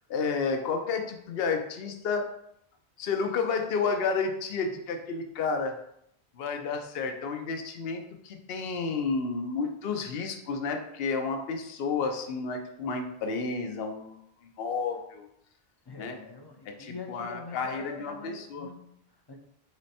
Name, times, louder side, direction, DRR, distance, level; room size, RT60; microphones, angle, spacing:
voice 1, 0.1-2.2 3.0-5.7 6.3-15.3 16.0-16.2 16.7-18.7, left 4 dB, 70° left, 5 dB, 0.8 m, -31 dB
voice 2, 15.9-19.4, left 4 dB, 35° left, 2 dB, 0.4 m, -44 dB
4.0 x 3.2 x 4.1 m, 0.75 s
omnidirectional pair, 1.1 m